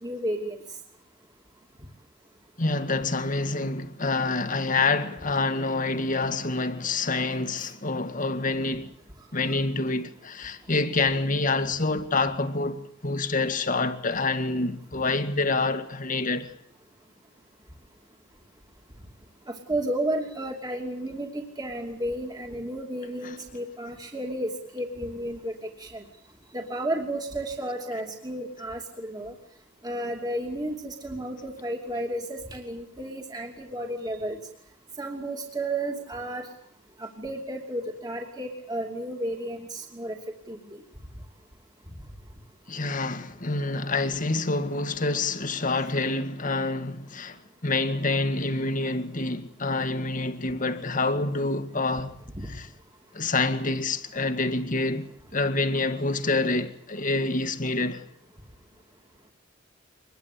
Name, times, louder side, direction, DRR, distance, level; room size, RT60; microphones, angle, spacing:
voice 1, 0.0-0.6 19.5-25.5 25.8-26.0 26.5-29.3 29.8-34.4 35.0-36.5 37.0-40.2 40.5-40.6, right 1 dB, 20° right, 2.9 m, -32 dB
voice 2, 2.6-8.9 9.3-16.5 23.2-23.4 42.7-52.2 52.5-52.7 53.1-58.0, left 3 dB, 45° left, 2.0 m, -27 dB
25.0 x 21.5 x 8.6 m
head